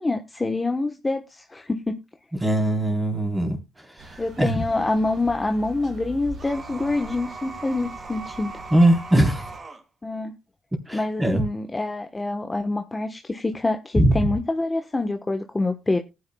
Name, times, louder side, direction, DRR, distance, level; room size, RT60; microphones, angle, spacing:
voice 1, 0.0-2.0 4.2-8.6 10.0-10.3 10.9-16.0, left 2 dB, 20° left, 1.1 m, -26 dB
voice 2, 2.4-3.6 3.9-4.6 8.7-9.5 10.9-11.4 14.0-14.2, right 1 dB, 10° right, 3.5 m, -21 dB
sound 1, 4.0-9.6, right 1 dB, 65° right, 5.0 m, -43 dB
sound 2, 6.4-9.8, right 3 dB, 30° right, 2.2 m, -39 dB
18.5 x 9.6 x 2.3 m
cardioid pair, 90°, 0 cm